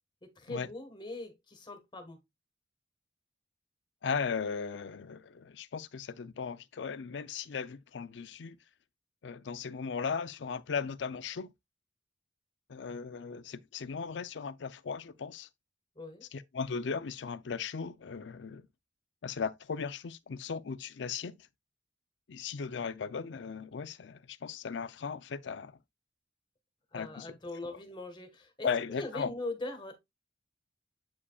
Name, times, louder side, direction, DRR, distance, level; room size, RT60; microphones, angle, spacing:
voice 1, 0.2-2.2 16.0-16.2 26.9-30.0, left 2 dB, 25° left, 1.4 m, -41 dB
voice 2, 4.0-8.6 9.2-11.5 12.7-15.5 16.3-18.6 19.2-21.4 22.3-25.7 26.9-27.3 28.6-29.3, left 5 dB, 75° left, 0.5 m, -37 dB
8.3 x 5.0 x 2.3 m
head